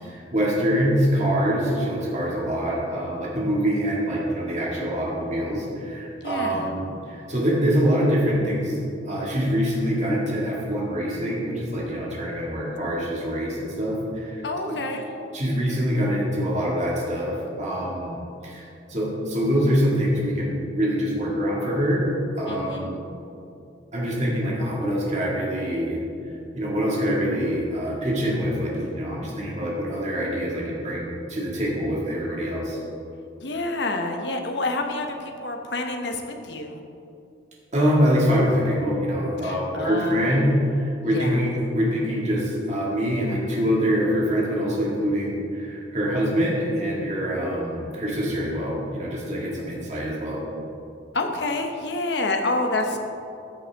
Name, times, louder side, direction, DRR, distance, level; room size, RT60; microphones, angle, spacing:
voice 1, 0.0-8.8 9.0-14.8 15.3-18.2 18.4-23.0 23.9-26.0 26.5-32.8 37.7-50.4, equal, 40° right, -4 dB, 2.0 m, -25 dB
voice 2, 6.2-6.7 14.4-15.1 22.5-22.9 33.4-36.8 39.4-40.4 41.1-41.4 51.1-53.0, left 2 dB, 70° left, 4 dB, 0.9 m, -28 dB
14.0 x 6.5 x 3.5 m, 2.7 s
head